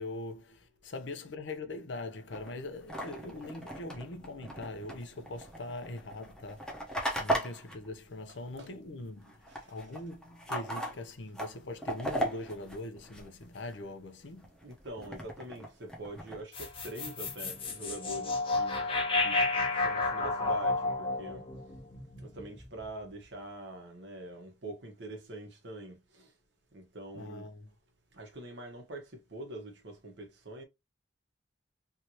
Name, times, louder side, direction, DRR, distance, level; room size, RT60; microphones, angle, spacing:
voice 1, 0.0-6.7 7.2-9.4 9.7-14.5 27.1-27.7, left 2 dB, 80° left, 0.7 m, -42 dB
sound 1, 2.3-8.9 9.1-13.7 14.2-16.4, equal, 5° left, 0.9 m, -38 dB
voice 2, 14.6-18.9 19.2-19.4 19.8-21.5 22.2-26.3 26.7-27.5 28.1-30.6, right 1 dB, 75° right, 1.2 m, -44 dB
sound 2, 16.5-22.8, left 3 dB, 30° left, 0.9 m, -31 dB
3.3 x 2.8 x 2.9 m
head